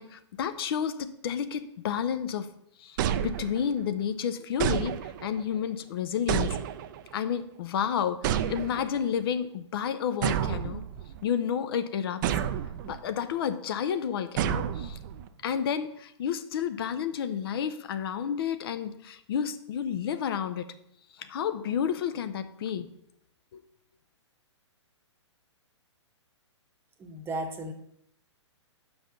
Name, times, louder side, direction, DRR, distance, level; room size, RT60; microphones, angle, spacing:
voice 1, 0.0-2.5 2.8-3.0 3.2-6.6 7.1-10.8 11.2-12.3 12.8-15.0 15.4-20.7 21.2-22.9 23.5-23.6, left 8 dB, 50° left, 12 dB, 0.7 m, -31 dB
sound 1, 3.0-3.9 4.6-5.4 6.3-7.1 8.2-9.0 10.2-11.2 12.2-13.0 14.4-15.3, right 9 dB, 40° right, 0.5 m, -30 dB
voice 2, 27.0-27.7, right 1 dB, 15° right, 4 dB, 1.0 m, -34 dB
5.6 x 5.6 x 6.6 m, 0.75 s
figure-of-eight pair, 120°, 15 cm